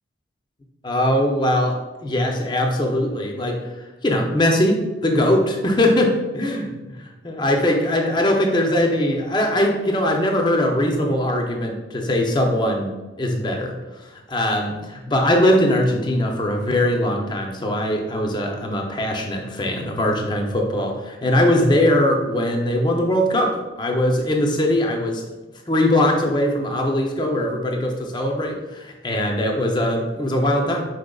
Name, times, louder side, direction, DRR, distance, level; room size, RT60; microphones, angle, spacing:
voice 1, 0.8-3.6 4.0-6.7 6.9-13.8 14.3-25.2 25.7-30.9, left 1 dB, 25° left, 2 dB, 0.5 m, -21 dB
4.9 x 4.3 x 2.3 m, 1.1 s
head